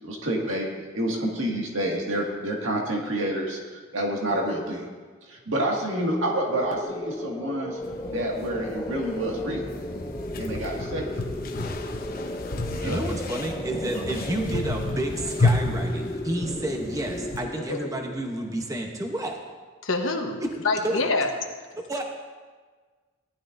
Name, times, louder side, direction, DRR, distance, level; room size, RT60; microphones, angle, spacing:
voice 1, 0.0-4.9 5.3-7.8 8.1-9.6 10.4-11.2 12.7-13.0, right 1 dB, 70° right, -1 dB, 2.0 m, -28 dB
sound 1, 6.0-18.8, left 1 dB, 20° left, 0.5 m, -36 dB
sound 2, 7.8-17.4, left 2 dB, 45° left, 0.9 m, -31 dB
voice 2, 12.8-19.4 20.4-20.5 20.8-21.0 21.9-22.0, right 1 dB, 15° right, 2 dB, 0.8 m, -30 dB
voice 3, 19.8-21.3, left 3 dB, 70° left, 2 dB, 1.2 m, -26 dB
18.0 x 12.0 x 2.6 m, 1.4 s
head